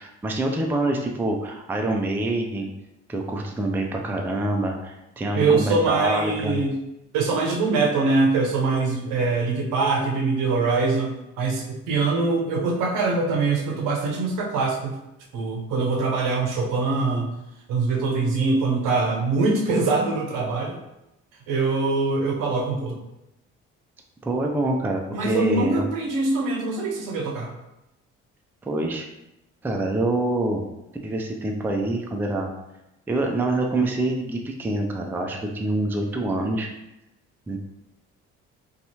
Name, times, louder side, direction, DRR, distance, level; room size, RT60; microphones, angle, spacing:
voice 1, 0.0-2.7 3.1-6.5 24.2-25.9 28.6-29.1 29.6-30.7 31.0-32.5 33.1-36.7 37.5-37.6, right 2 dB, 5° right, 2 dB, 0.4 m, -26 dB
voice 2, 5.4-6.7 7.1-14.9 15.3-17.3 17.7-20.7 21.5-23.0 25.1-27.5, right 3 dB, 70° right, 1 dB, 0.7 m, -23 dB
2.7 x 2.3 x 2.8 m, 0.91 s
hypercardioid pair, 55°, 33 cm